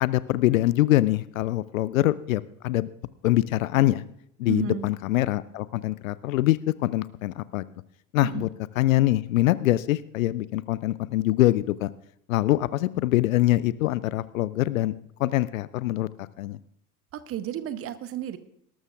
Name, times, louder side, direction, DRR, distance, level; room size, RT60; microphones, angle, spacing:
voice 1, 0.0-2.9 3.2-4.0 4.4-7.6 8.1-8.5 8.8-11.9 12.3-14.9 15.2-16.6, left 16 dB, 60° left, 18 dB, 0.5 m, -24 dB
voice 2, 4.5-4.9 8.2-8.4 17.1-18.4, right 11 dB, 30° right, 13 dB, 0.9 m, -32 dB
19.5 x 12.5 x 2.5 m, 0.73 s
figure-of-eight pair, 75°, 47 cm